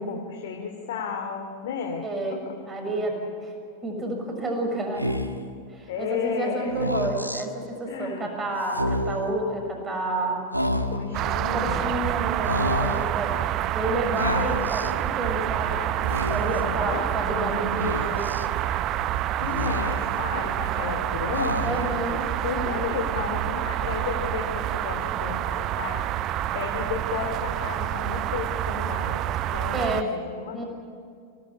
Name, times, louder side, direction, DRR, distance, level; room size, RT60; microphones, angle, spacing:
voice 1, 0.0-2.0 2.3-2.5 5.9-7.3 7.9-8.3 10.9-12.0 16.4-17.0 19.4-21.8 22.1-26.1 26.5-30.6, left 6 dB, 55° left, 2 dB, 2.5 m, -33 dB
voice 2, 2.0-3.5 3.8-5.1 5.7-10.4 11.5-15.8 16.3-18.3 21.6-22.3 22.5-22.9 29.1-29.2 29.7-30.1 30.5-30.7, right 2 dB, 20° right, 2 dB, 6.6 m, -30 dB
Speech, 5.0-5.5 6.7-7.4 8.6-9.3 10.5-11.2 12.4-13.1 14.2-14.9 15.9-16.6 17.8-18.4 19.4-20.2 21.3-22.0, left 1 dB, 90° left, 1.4 m, -29 dB
sound 1, 11.1-30.0, right 12 dB, 35° right, 0.7 m, -28 dB
24.0 x 18.5 x 9.9 m, 2.3 s
figure-of-eight pair, 90°, 0 cm